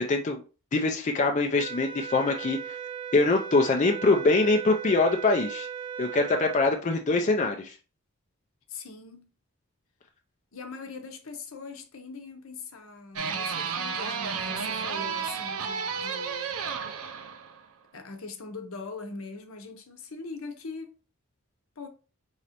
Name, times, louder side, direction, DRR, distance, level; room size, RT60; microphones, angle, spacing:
voice 1, 0.1-0.4 0.7-2.8 3.1-5.7 6.0-7.7, left 3 dB, 35° left, 0.4 m, -24 dB
sound 1, 1.6-6.7, right 7 dB, 25° right, 0.5 m, -37 dB
voice 2, 8.7-9.3 10.5-16.6 17.9-21.0 21.8-21.9, left 4 dB, 75° left, 0.8 m, -41 dB
sound 2, 13.2-17.7, right 6 dB, 90° right, 0.5 m, -32 dB
4.9 x 3.2 x 2.8 m
head